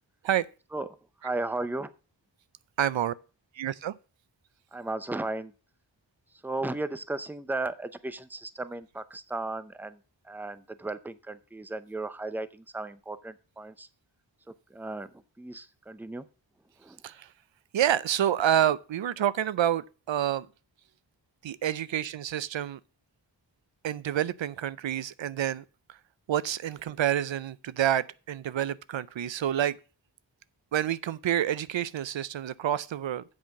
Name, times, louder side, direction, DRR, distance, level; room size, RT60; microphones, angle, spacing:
voice 1, 0.7-1.9 4.7-5.5 6.3-13.9 14.5-16.3 16.8-17.0, right 2 dB, 5° right, 0.6 m, -35 dB
voice 2, 2.8-3.1 3.5-3.9 17.0-17.3 17.7-20.5 21.4-22.8 23.8-26.0 26.3-29.8 30.7-33.2, right 11 dB, 80° right, 0.5 m, -28 dB
7.8 x 5.6 x 7.0 m
wide cardioid pair, 80°, 45 cm